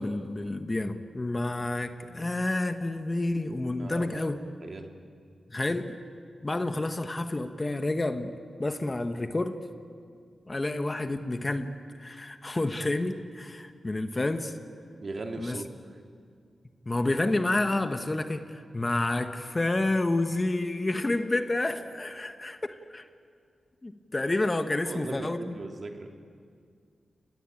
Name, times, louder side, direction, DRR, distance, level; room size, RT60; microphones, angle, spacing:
voice 1, 0.0-4.4 5.5-6.0 6.4-8.3 8.6-9.6 10.5-11.7 12.0-14.6 15.4-15.6 16.8-23.1 23.8-25.5, left 2 dB, 30° left, 8 dB, 1.6 m, -29 dB
voice 2, 3.8-4.2 4.6-4.9 14.9-15.7 24.8-26.1, right 3 dB, 50° right, 3 dB, 2.9 m, -38 dB
29.0 x 20.5 x 8.8 m, 2.2 s
cardioid pair, 65°, 0 cm